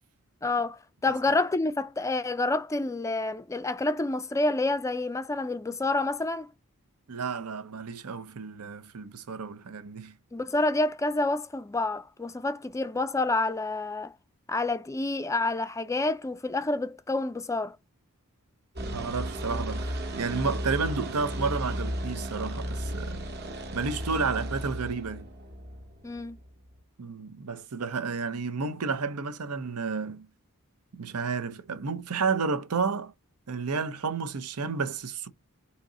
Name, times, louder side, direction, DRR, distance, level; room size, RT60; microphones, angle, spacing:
voice 1, 0.4-6.5 10.3-14.1 14.5-17.8 26.0-26.4, left 2 dB, 15° left, 0.4 m, -28 dB
voice 2, 7.1-10.1 18.8-23.2 23.7-25.3 27.0-30.3 31.0-33.1 33.5-35.3, right 5 dB, 80° right, 0.7 m, -31 dB
sound 1, 18.8-26.8, equal, 50° right, 1.0 m, -34 dB
4.0 x 2.9 x 3.9 m
head